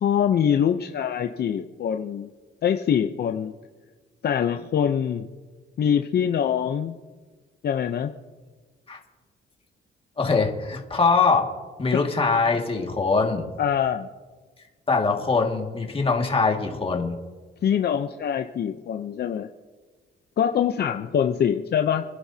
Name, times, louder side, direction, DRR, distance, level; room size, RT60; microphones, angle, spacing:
voice 1, 0.0-2.3 2.6-3.5 4.2-5.3 5.8-7.0 7.6-8.1 11.9-12.0 13.6-14.1 17.6-19.5 20.4-22.0, left 8 dB, 55° left, 6 dB, 0.7 m, -24 dB
voice 2, 10.2-11.5 11.8-13.5 14.9-17.1, left 4 dB, 25° left, 1 dB, 2.1 m, -22 dB
29.0 x 11.0 x 2.8 m, 1.4 s
cardioid pair, 90°, 20 cm